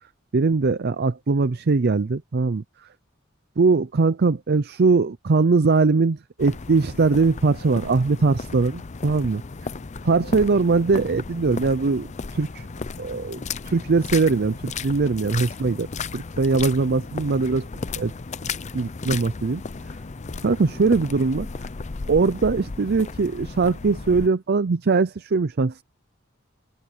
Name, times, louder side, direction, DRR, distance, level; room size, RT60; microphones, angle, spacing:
voice 1, 0.3-2.6 3.6-9.4 10.0-12.7 13.0-15.9 16.1-17.7 18.0-18.1 18.7-19.6 20.4-21.5 22.1-25.8, right 4 dB, 50° right, 0.5 m, -21 dB
sound 1, 6.4-24.3, left 4 dB, 35° left, 0.6 m, -35 dB
open air
head